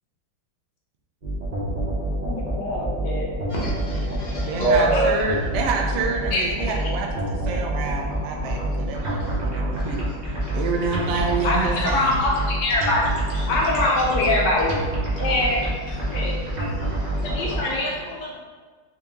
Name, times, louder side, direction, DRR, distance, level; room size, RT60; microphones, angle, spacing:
sound 1, 1.2-17.6, right 1 dB, 35° right, 0.6 m, -27 dB
voice 1, 2.2-3.3 4.9-5.0 6.3-6.7 11.4-13.1 13.5-14.7 15.2-15.6 16.1-16.4 17.2-18.4, left 2 dB, 80° left, -3 dB, 1.3 m, -24 dB
voice 2, 3.5-5.1 8.5-8.6 9.0-9.4 9.7-11.5 13.3-13.5 15.1-15.3 15.9-17.9, right 2 dB, 40° left, -6 dB, 0.7 m, -29 dB
voice 3, 4.5-10.1 10.5-12.2, right 4 dB, 85° right, 1 dB, 0.6 m, -27 dB
3.8 x 2.8 x 3.5 m, 1.5 s
omnidirectional pair, 1.9 m